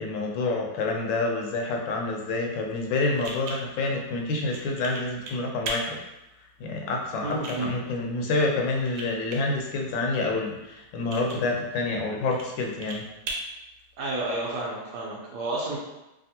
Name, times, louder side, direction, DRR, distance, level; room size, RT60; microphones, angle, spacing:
voice 1, 0.0-6.0 6.6-13.0, left 3 dB, 80° left, 1 dB, 1.3 m, -28 dB
sound 1, 2.5-14.6, right 2 dB, 85° right, 1.4 m, -41 dB
voice 2, 7.2-7.8 14.0-15.8, right 2 dB, 65° right, -5 dB, 1.1 m, -31 dB
3.4 x 2.4 x 2.7 m, 0.96 s
omnidirectional pair, 2.1 m